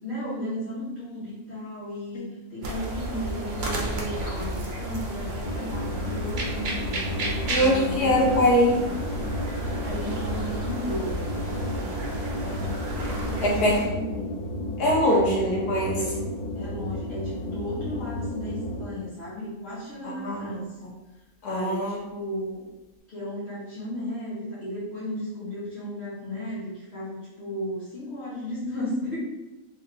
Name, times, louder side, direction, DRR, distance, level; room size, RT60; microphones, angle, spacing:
voice 1, 0.0-2.2 2.5-8.4 9.8-11.3 13.1-14.3 15.0-15.2 15.9-16.3 16.5-20.7 21.5-22.6 23.1-29.2, equal, 35° left, -11 dB, 1.7 m, -34 dB
sound 1, 2.6-13.8, right 1 dB, 55° right, 0.8 m, -32 dB
sound 2, 5.4-19.1, left 1 dB, 70° left, 0.5 m, -33 dB
voice 2, 7.5-8.8 12.4-12.7 13.4-13.7 14.8-16.0 20.0-20.6 21.4-22.0, equal, 85° left, -3 dB, 1.5 m, -22 dB
3.5 x 2.8 x 3.8 m, 1.1 s
omnidirectional pair, 1.6 m